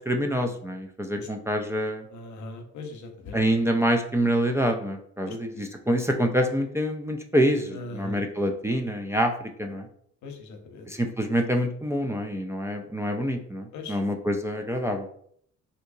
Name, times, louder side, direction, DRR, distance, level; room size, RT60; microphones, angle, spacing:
voice 1, 0.1-2.0 3.3-9.3 9.6-9.8 10.9-15.1, equal, 10° right, 3 dB, 0.3 m, -26 dB
voice 2, 2.1-3.4 5.2-5.7 7.7-8.2 10.2-10.9 13.7-14.0, left 2 dB, 70° left, 4 dB, 0.8 m, -40 dB
3.7 x 2.8 x 2.6 m, 0.64 s
cardioid pair, 90°, 30 cm